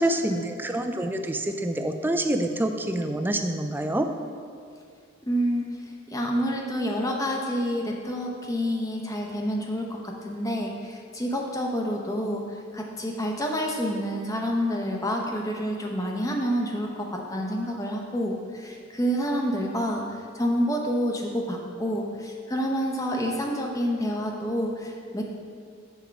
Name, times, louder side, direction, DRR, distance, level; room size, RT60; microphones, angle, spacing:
voice 1, 0.0-4.1, right 1 dB, 10° right, 6 dB, 0.4 m, -26 dB
voice 2, 5.2-5.7 6.1-12.4 12.7-20.0 20.3-25.3, equal, 15° left, 0 dB, 0.8 m, -28 dB
7.2 x 4.5 x 5.9 m, 2.2 s
head